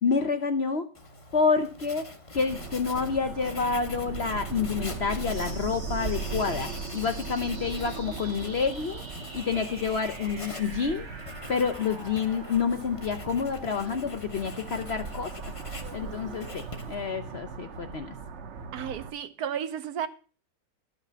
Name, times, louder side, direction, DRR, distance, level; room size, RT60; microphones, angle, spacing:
voice 1, 0.0-0.9 1.3-2.1 2.3-9.0 9.3-11.1 11.5-15.5 15.9-18.1, left 5 dB, 55° left, 0.8 m, -28 dB
Writing, 0.9-17.2, left 2 dB, 25° left, 0.8 m, -44 dB
sound 1, 2.4-19.1, right 5 dB, 50° right, 1.0 m, -39 dB
sound 2, 5.3-16.3, right 2 dB, 20° right, 0.9 m, -46 dB
voice 2, 18.7-20.1, right 9 dB, 70° right, 1.2 m, -33 dB
12.0 x 5.8 x 6.8 m
omnidirectional pair, 1.8 m